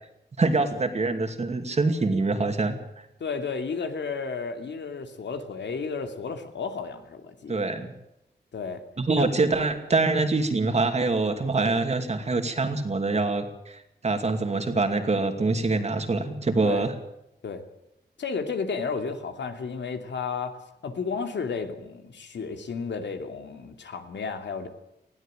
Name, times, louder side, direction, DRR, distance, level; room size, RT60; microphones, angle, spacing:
voice 1, 0.4-2.8 7.5-7.9 9.0-16.9, right 3 dB, 40° right, 7 dB, 2.5 m, -25 dB
voice 2, 3.2-7.6 8.5-8.8 9.2-9.3 16.6-16.9 17.4-17.6 18.2-20.6 20.8-24.7, left 5 dB, 85° left, 6 dB, 2.7 m, -32 dB
20.0 x 16.0 x 9.0 m, 0.85 s
wide cardioid pair, 170°, 18 cm